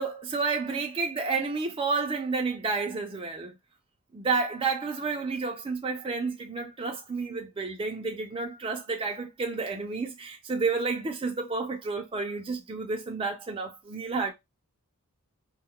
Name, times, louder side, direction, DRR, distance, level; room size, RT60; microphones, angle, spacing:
voice 1, 0.0-3.5 4.1-14.3, right 4 dB, 25° right, 0.4 m, -30 dB
2.2 x 2.2 x 3.6 m
head